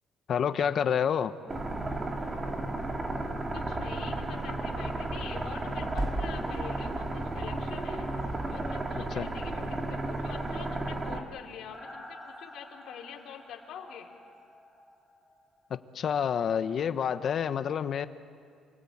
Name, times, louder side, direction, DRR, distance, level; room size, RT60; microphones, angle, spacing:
voice 1, 0.3-1.3 8.9-9.3 15.7-18.1, left 8 dB, 50° left, 11 dB, 1.1 m, -28 dB
sound 1, 1.5-11.2, right 2 dB, 25° right, 2.5 m, -33 dB
voice 2, 3.3-8.1 8.5-14.1, left 8 dB, 65° left, 2 dB, 3.3 m, -45 dB
sound 2, 7.6-15.5 15.8-15.9, equal, ahead, 6.7 m, -49 dB
28.5 x 21.0 x 8.7 m, 2.2 s
cardioid pair, 125°, 0 cm